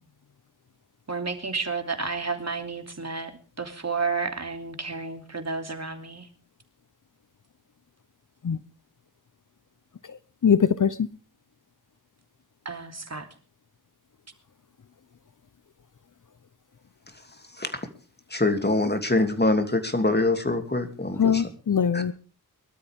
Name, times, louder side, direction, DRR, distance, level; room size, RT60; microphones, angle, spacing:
voice 1, 1.1-6.3 12.6-13.3, right 4 dB, 45° right, 2.9 m, -31 dB
voice 2, 10.4-11.1 21.2-22.1, left 7 dB, 55° left, 0.8 m, -22 dB
voice 3, 18.3-21.5 21.9-22.0, left 2 dB, 25° left, 2.9 m, -24 dB
23.0 x 12.5 x 3.6 m
cardioid pair, 55°, 38 cm